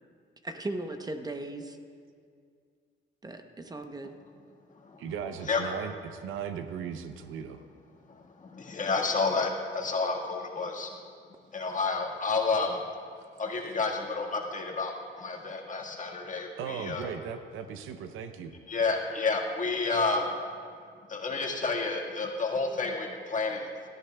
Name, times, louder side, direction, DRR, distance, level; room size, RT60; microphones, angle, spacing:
voice 1, 0.4-1.8 3.2-4.2, right 2 dB, 20° right, 6 dB, 0.8 m, -37 dB
voice 2, 5.0-7.6 13.2-13.7 16.6-18.5, right 7 dB, 85° right, 8 dB, 0.7 m, -38 dB
voice 3, 8.1-10.9 11.5-12.8 13.4-17.1 18.7-20.3 21.1-23.7, left 4 dB, 40° left, 0 dB, 1.6 m, -30 dB
17.5 x 13.5 x 2.3 m, 2.1 s
cardioid pair, 90°, 20 cm